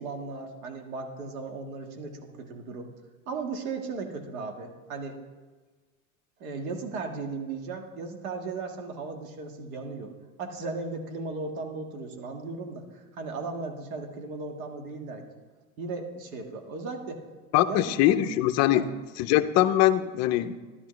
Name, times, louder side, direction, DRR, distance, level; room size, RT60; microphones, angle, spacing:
voice 1, 0.0-2.9 3.3-5.2 6.4-10.1 10.4-15.2 15.8-17.2 17.6-18.2 18.7-18.9, right 3 dB, 70° right, 3 dB, 1.9 m, -36 dB
voice 2, 17.5-18.8 19.2-20.6, left 13 dB, 35° left, 9 dB, 0.6 m, -22 dB
12.0 x 11.5 x 3.2 m, 1.3 s
supercardioid pair, 120°, 44 cm